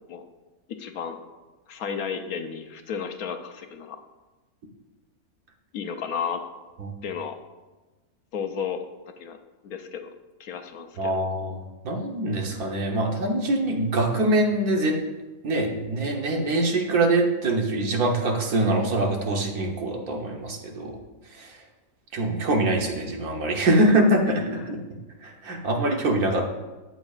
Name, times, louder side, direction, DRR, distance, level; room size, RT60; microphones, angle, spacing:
voice 1, 0.8-1.2 1.7-4.0 5.7-6.4 7.0-7.4 8.3-8.8 9.2-9.4 9.6-10.1 10.4-11.1, left 7 dB, 70° left, 7 dB, 1.1 m, -32 dB
voice 2, 11.0-11.6 11.8-15.0 15.4-20.9 21.4-21.5 22.1-24.8 25.2-26.5, right 1 dB, 70° right, 1 dB, 1.6 m, -24 dB
13.5 x 7.7 x 2.4 m, 1.2 s
omnidirectional pair, 1.6 m